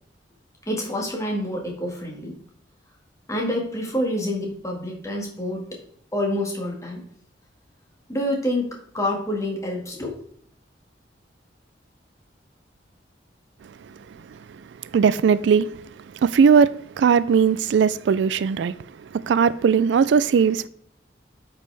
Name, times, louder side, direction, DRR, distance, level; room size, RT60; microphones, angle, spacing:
voice 1, 0.7-2.4 3.3-5.8 6.1-7.0 8.1-10.2, left 1 dB, 15° left, 1.8 m, -27 dB
voice 2, 14.9-15.7 16.2-18.7 19.3-20.7, right 6 dB, 80° right, 0.3 m, -18 dB
8.4 x 5.2 x 3.4 m
head